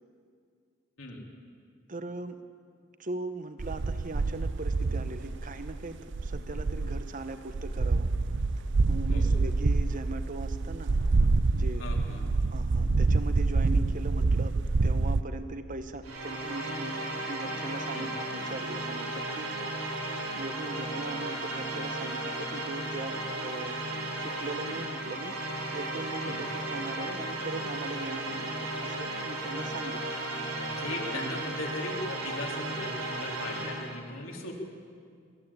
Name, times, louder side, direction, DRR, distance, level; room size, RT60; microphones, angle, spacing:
voice 1, 1.9-2.4 3.0-6.0 6.2-8.1 8.9-10.9 11.5-11.8 12.2-14.5 14.8-17.0 17.3-19.5 20.3-23.8 24.2-25.3 25.7-30.2 31.1-31.3, right 2 dB, 40° right, 9 dB, 1.1 m, -40 dB
sound 1, 3.6-7.1 7.5-15.2, right 3 dB, 60° right, 0.6 m, -27 dB
voice 2, 11.8-12.3 17.9-18.1 26.2-26.4 30.7-34.5, left 2 dB, 70° left, 0 dB, 3.4 m, -39 dB
sound 2, 16.0-34.0, right 1 dB, 90° right, 4.1 m, -35 dB
23.0 x 14.5 x 8.6 m, 2.2 s
head